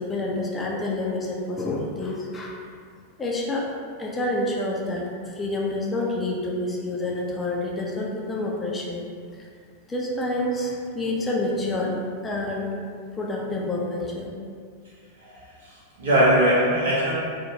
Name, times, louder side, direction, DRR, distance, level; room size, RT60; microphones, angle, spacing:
voice 1, 0.0-2.6 3.2-3.7 4.0-9.0 9.4-9.5 9.9-12.0 12.2-12.7 13.2-14.3, left 2 dB, 15° left, -3 dB, 0.4 m, -28 dB
voice 2, 15.2-17.1, right 1 dB, 65° right, -7 dB, 0.8 m, -21 dB
2.6 x 2.1 x 2.7 m, 2.1 s
figure-of-eight pair, 90°, 0 cm